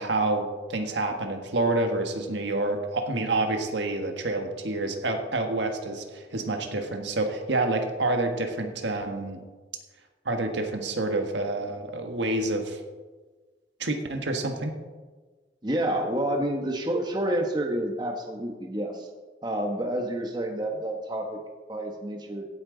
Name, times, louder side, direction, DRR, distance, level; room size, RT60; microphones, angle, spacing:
voice 1, 0.0-9.4 10.2-12.8 13.8-14.7, right 2 dB, 75° right, 4 dB, 1.5 m, -28 dB
voice 2, 15.6-19.1 19.4-21.4 21.7-22.5, right 1 dB, 25° right, 2 dB, 1.1 m, -29 dB
16.5 x 8.8 x 3.9 m, 1.3 s
head